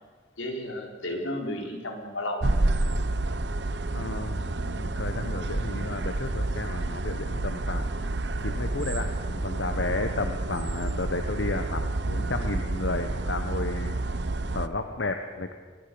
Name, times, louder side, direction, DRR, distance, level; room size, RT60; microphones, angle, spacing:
voice 1, 0.4-2.4, left 1 dB, 90° left, 2 dB, 4.5 m, -33 dB
sound 1, 2.4-14.7, right 2 dB, 65° right, 1.0 m, -29 dB
voice 2, 3.9-7.9 8.4-14.0 14.5-15.5, left 2 dB, 70° left, 6 dB, 1.3 m, -32 dB
24.0 x 21.0 x 7.1 m, 1.5 s
head